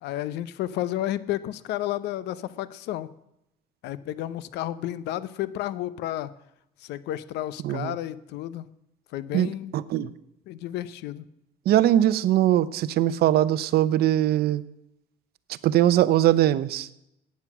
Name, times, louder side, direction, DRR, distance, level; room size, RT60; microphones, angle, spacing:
voice 1, 0.0-3.1 3.8-6.3 6.8-8.7 9.1-9.8 10.5-11.3, left 13 dB, 85° left, 16 dB, 0.8 m, -31 dB
voice 2, 9.3-10.1 11.7-14.6 15.6-16.9, right 12 dB, 70° right, 16 dB, 0.8 m, -21 dB
15.0 x 9.6 x 6.1 m, 0.84 s
cardioid pair, 110°, 17 cm